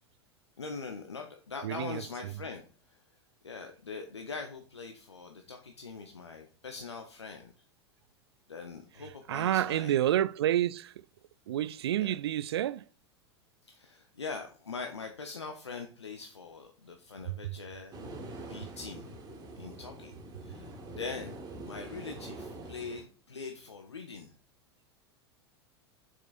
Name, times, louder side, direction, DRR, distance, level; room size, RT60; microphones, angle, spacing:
voice 1, 0.6-2.6 2.9-3.0 3.4-7.5 8.5-9.9 12.0-12.1 13.6-17.9 18.5-19.1 19.6-20.1 20.4-21.3 21.6-24.3, left 4 dB, 80° left, 0.8 m, -42 dB
voice 2, 1.6-2.3 9.3-10.9 11.5-12.9 17.3-17.5, right 12 dB, 65° right, 0.4 m, -29 dB
sound 1, 17.9-23.0, right 2 dB, 25° right, 1.9 m, -44 dB
7.4 x 6.4 x 2.5 m
figure-of-eight pair, 85°, 14 cm